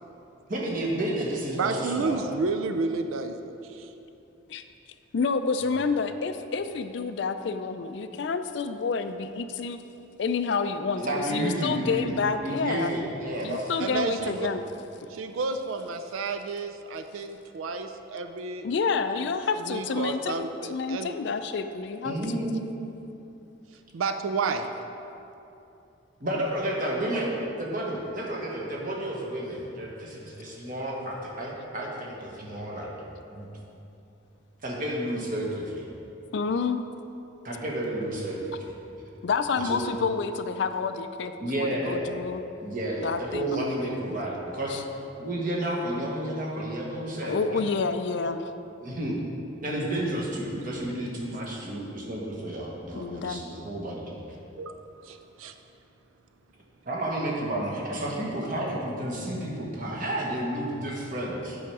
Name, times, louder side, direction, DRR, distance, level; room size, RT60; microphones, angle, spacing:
voice 1, 0.5-2.2 11.0-12.1 12.4-14.3 22.0-22.7 26.2-27.3 27.6-32.9 33.3-33.5 34.6-35.9 37.4-38.8 39.6-39.9 41.4-42.2 42.6-44.8 45.2-47.6 48.8-49.2 49.6-54.0 56.9-61.6, right 1 dB, 45° right, -3 dB, 1.3 m, -31 dB
voice 2, 1.5-3.9 13.8-14.5 15.1-18.7 19.6-21.2 23.9-24.7 54.6-55.5, right 4 dB, 85° right, 8 dB, 0.4 m, -31 dB
voice 3, 5.1-9.8 10.2-12.9 13.4-14.6 18.6-22.2 36.3-36.9 39.2-42.4 43.0-43.6 44.7-44.8 47.2-48.5 52.9-53.4, left 5 dB, 60° left, 9 dB, 0.4 m, -29 dB
8.4 x 5.7 x 4.8 m, 2.8 s
head